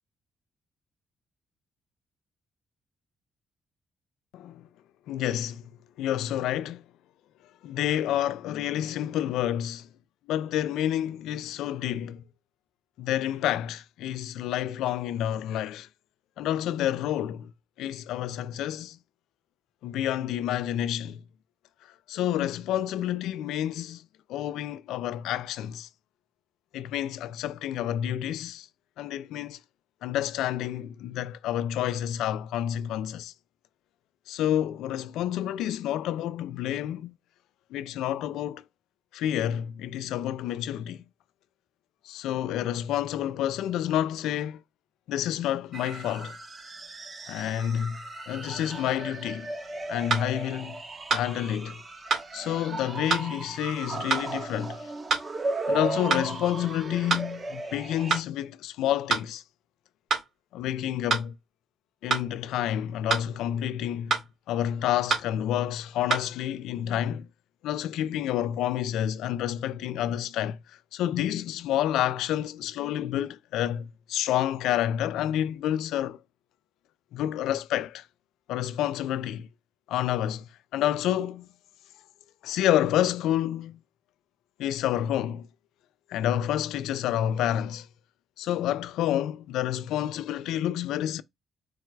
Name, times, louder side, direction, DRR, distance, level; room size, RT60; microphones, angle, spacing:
voice 1, 5.1-5.7 6.0-6.8 7.6-9.9 10.3-12.2 13.0-15.9 16.4-17.5 17.8-19.0 19.8-21.2 22.1-24.0 24.3-25.9 26.7-28.7 29.0-29.6 30.0-33.3 34.3-37.1 37.7-38.6 39.1-41.0 42.1-44.6 45.1-46.3 47.3-48.0 48.3-49.5 49.9-50.8 51.1-51.8 52.3-54.9 55.7-59.4 60.5-61.3 62.0-64.2 64.5-67.3 67.6-70.6 70.9-76.2 77.1-78.0 78.5-79.5 79.9-81.5 82.4-83.8 84.6-85.5 86.1-87.9 88.4-91.2, left 11 dB, 90° left, 0.3 m, -29 dB
sound 1, 45.7-58.2, right 3 dB, 30° right, 0.8 m, -36 dB
sound 2, 49.2-49.3 50.1-50.3 51.1-51.3 52.1-52.3 53.1-53.3 54.1-54.3 55.1-55.3 56.1-56.3 57.1-57.3 58.1-58.3 59.1-59.3 60.1-60.3 61.1-61.3 62.1-62.3 63.1-63.3 64.1-64.3 65.1-65.3 66.1-66.3, right 4 dB, 55° right, 1.9 m, -26 dB
4.7 x 2.2 x 4.5 m
cardioid pair, 90°, 0 cm